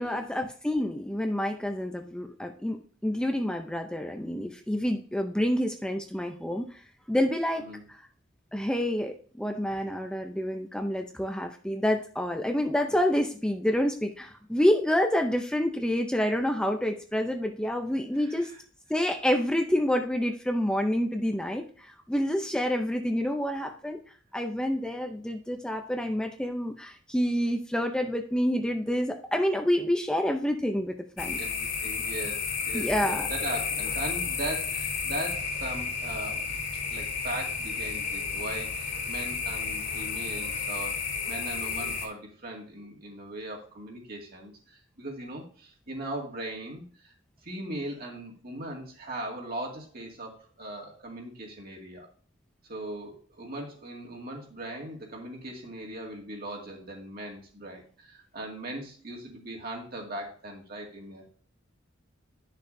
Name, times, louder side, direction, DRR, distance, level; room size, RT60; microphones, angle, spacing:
voice 1, 0.0-6.7 7.1-8.0 8.5-18.5 18.9-24.0 24.3-31.4 32.7-33.3, equal, 5° left, 4 dB, 0.5 m, -28 dB
sound 1, 31.2-42.1, left 5 dB, 50° left, 3.0 m, -32 dB
voice 2, 31.4-36.6 36.9-46.8 47.4-52.1 52.7-61.3, right 1 dB, 50° right, 0 dB, 2.1 m, -39 dB
10.0 x 6.6 x 2.6 m, 0.44 s
head